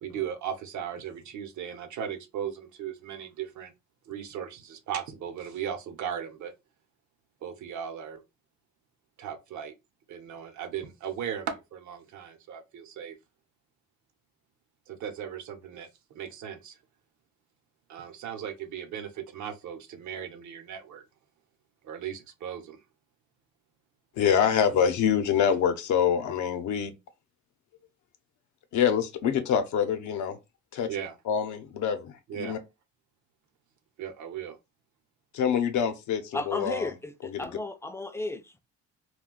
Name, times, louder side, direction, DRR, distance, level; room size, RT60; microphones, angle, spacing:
voice 1, 0.0-3.7 4.1-6.5 7.4-8.2 9.2-9.7 10.1-13.2 14.9-15.9 16.1-16.8 17.9-21.0 21.8-22.8 30.9-31.2 32.3-32.6 34.0-34.6, right 8 dB, 70° right, 0.7 m, -37 dB
voice 2, 24.2-26.9 28.7-30.4 30.7-30.9 31.3-32.6 35.3-36.9 37.2-37.5, left 8 dB, 75° left, 0.7 m, -25 dB
voice 3, 36.3-38.6, left 2 dB, 10° left, 0.3 m, -34 dB
2.4 x 2.2 x 3.6 m
cardioid pair, 90°, 30 cm